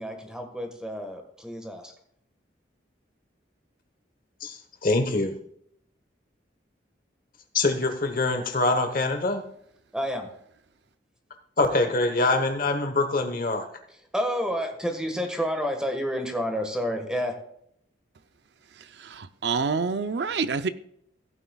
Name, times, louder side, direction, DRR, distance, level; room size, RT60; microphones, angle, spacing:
voice 1, 0.0-1.9 9.9-10.3 14.1-17.3, equal, 5° right, 1.5 m, -29 dB
voice 2, 4.4-5.4 7.5-9.4 11.6-13.6, left 2 dB, 45° left, 1.1 m, -24 dB
voice 3, 19.0-20.7, right 5 dB, 65° right, 0.5 m, -27 dB
15.5 x 9.0 x 2.3 m
head